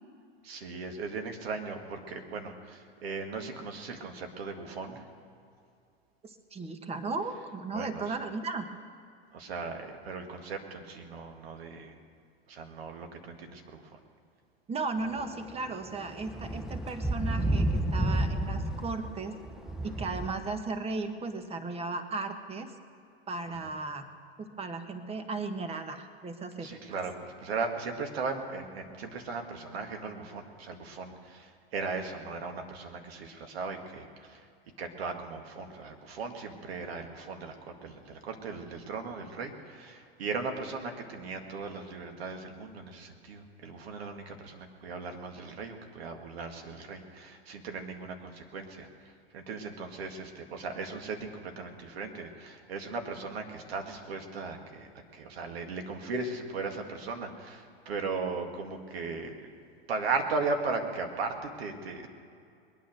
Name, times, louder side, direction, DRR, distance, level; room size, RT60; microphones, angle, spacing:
voice 1, 0.4-5.0 7.7-8.2 9.3-12.0 12.5-14.0 19.8-20.1 23.5-23.7 26.6-34.5 34.8-59.5 59.9-62.1, right 4 dB, 80° right, 4 dB, 2.0 m, -37 dB
voice 2, 6.2-8.7 14.7-19.3 19.8-22.7 23.3-24.0 24.4-27.0, right 3 dB, 20° right, 8 dB, 1.3 m, -36 dB
sound 1, 15.2-15.3 15.8-20.3, right 1 dB, ahead, 0.8 m, -30 dB
21.5 x 9.3 x 6.4 m, 2.4 s
hypercardioid pair, 105°, 30 cm